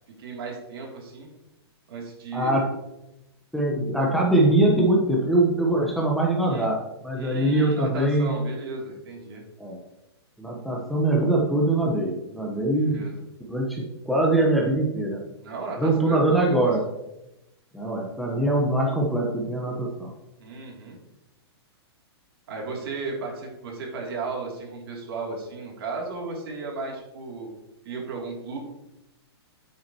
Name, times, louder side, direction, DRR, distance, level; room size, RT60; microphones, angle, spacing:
voice 1, 0.2-1.3 1.9-2.7 6.5-6.7 7.2-9.4 12.8-13.2 15.4-16.7 20.4-21.0 22.5-27.5 27.8-28.6, right 4 dB, 60° right, -1 dB, 3.2 m, -35 dB
voice 2, 2.3-2.6 3.5-8.3 9.6-9.8 10.4-13.1 13.5-15.2 15.8-16.8 17.7-20.1, right 1 dB, ahead, -3 dB, 1.2 m, -23 dB
9.5 x 8.5 x 3.1 m, 0.93 s
hypercardioid pair, 140°, 14 cm